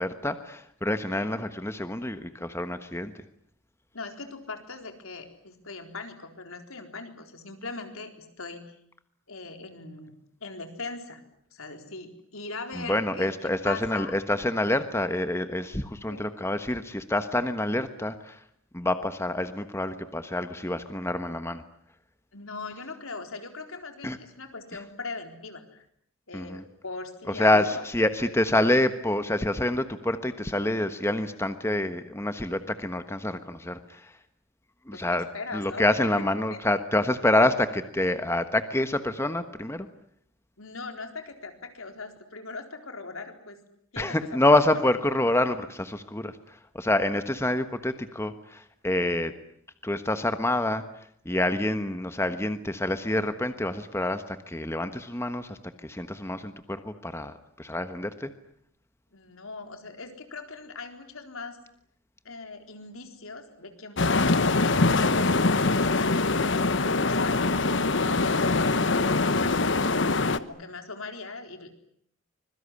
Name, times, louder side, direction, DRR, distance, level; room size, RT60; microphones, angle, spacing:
voice 1, 0.0-3.1 12.7-18.4 18.7-21.6 24.0-24.2 24.7-24.8 26.3-26.6 27.3-34.1 34.9-35.3 35.5-39.9 44.0-49.3 49.8-50.8 51.2-58.3 68.0-68.3, left 1 dB, 10° left, 10 dB, 1.3 m, -27 dB
voice 2, 3.9-8.7 9.3-10.1 10.4-11.2 11.5-13.3 13.6-14.1 16.1-16.2 22.3-25.8 26.3-27.8 34.9-35.8 36.5-36.6 40.6-43.6 43.9-44.2 44.7-44.8 59.1-61.6 62.2-65.1 65.5-69.6 70.4-71.7, left 3 dB, 85° left, 6 dB, 4.2 m, -40 dB
sound 1, 64.0-70.4, left 3 dB, 60° left, 1.1 m, -23 dB
25.5 x 22.0 x 9.9 m, 0.68 s
head